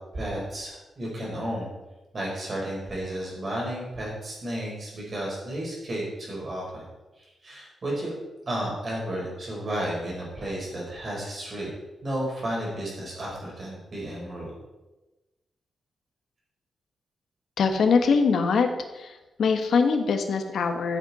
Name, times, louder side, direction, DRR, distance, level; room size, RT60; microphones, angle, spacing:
voice 1, 0.1-1.7 2.1-6.9 7.2-8.2 8.5-11.7 12.0-14.5, right 1 dB, 35° right, -3 dB, 4.6 m, -32 dB
voice 2, 17.6-18.7 18.9-21.0, left 5 dB, 70° left, 6 dB, 1.3 m, -23 dB
14.0 x 8.2 x 4.2 m, 1.1 s
wide cardioid pair, 155°, 0 cm